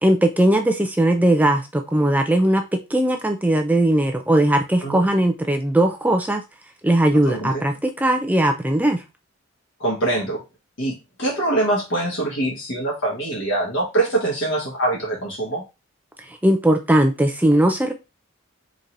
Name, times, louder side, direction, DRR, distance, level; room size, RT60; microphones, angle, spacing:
voice 1, 0.0-2.6 2.9-6.4 6.8-9.0 16.2-17.9, right 1 dB, 5° right, 4 dB, 0.4 m, -19 dB
voice 2, 7.3-7.6 9.8-10.4 10.8-15.6, right 2 dB, 55° left, -3 dB, 1.4 m, -24 dB
4.4 x 3.9 x 2.6 m, 0.27 s
head